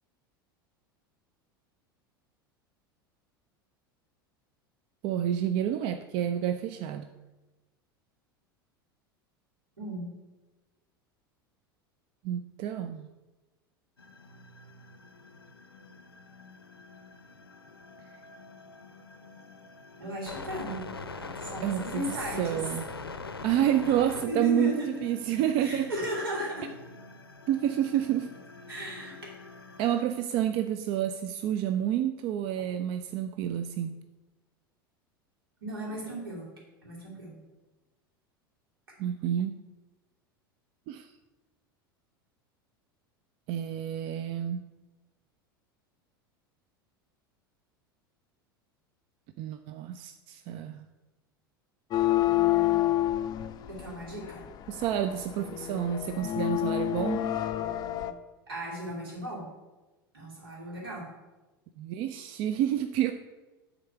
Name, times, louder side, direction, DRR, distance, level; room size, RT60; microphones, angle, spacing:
voice 1, 5.0-7.1 12.2-13.1 21.6-22.0 22.4-22.8 23.4-25.9 27.5-28.3 29.8-34.0 39.0-39.6 40.9-41.1 43.5-44.6 49.4-50.8 54.7-57.3 61.8-63.1, right 10 dB, 45° right, 9 dB, 0.4 m, -29 dB
voice 2, 9.8-10.1 20.0-20.8 21.1-22.6 24.3-24.9 25.6-26.7 28.7-29.2 35.6-36.5 36.8-37.3 53.7-54.4 58.5-59.5 60.1-61.1, equal, 80° right, -4 dB, 2.7 m, -35 dB
sound 1, 14.0-30.0, left 3 dB, 90° left, 0.5 m, -44 dB
sound 2, 51.9-58.1, left 14 dB, 35° left, 0.4 m, -28 dB
7.7 x 3.9 x 5.8 m, 1.1 s
figure-of-eight pair, 80°, 12 cm